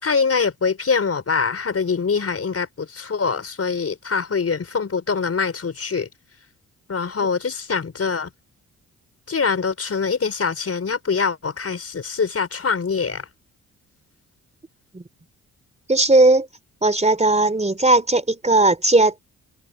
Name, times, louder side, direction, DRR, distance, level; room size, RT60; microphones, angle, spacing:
voice 1, 0.0-6.1 6.9-8.3 9.3-13.3, left 5 dB, 45° left, 4.9 m, -24 dB
voice 2, 15.9-16.5 16.8-19.2, right 2 dB, 20° right, 3.6 m, -17 dB
supercardioid pair, 55°, 33 cm